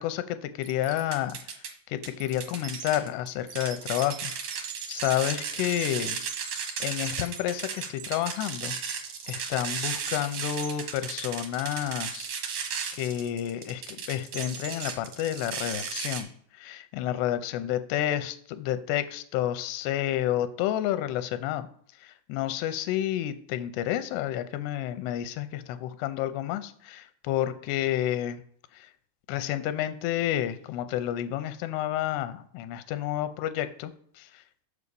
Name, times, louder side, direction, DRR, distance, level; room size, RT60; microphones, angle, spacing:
voice 1, 0.0-6.2 6.8-8.7 9.3-12.3 12.9-21.7 22.0-28.4 28.7-28.9 29.3-34.7, left 12 dB, 80° left, 11 dB, 2.7 m, -30 dB
sound 1, 0.6-1.7 2.0-16.2, right 6 dB, 70° right, 1.7 m, -35 dB
7.0 x 4.9 x 6.9 m, 0.64 s
omnidirectional pair, 4.9 m